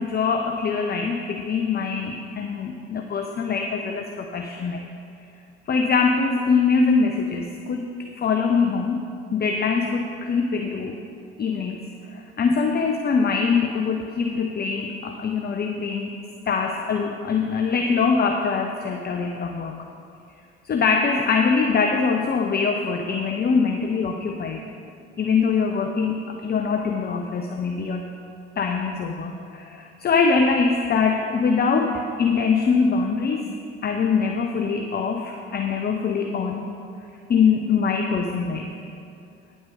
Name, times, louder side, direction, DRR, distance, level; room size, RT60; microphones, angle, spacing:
voice 1, 0.0-4.9 5.7-7.9 8.1-9.0 9.3-10.9 11.4-11.9 12.1-16.1 16.5-19.8 20.6-24.7 25.2-28.1 28.6-33.5 33.8-36.7 37.3-38.7, left 5 dB, 30° left, 3 dB, 0.8 m, -23 dB
9.8 x 8.1 x 5.0 m, 2.6 s
hypercardioid pair, 55°, 31 cm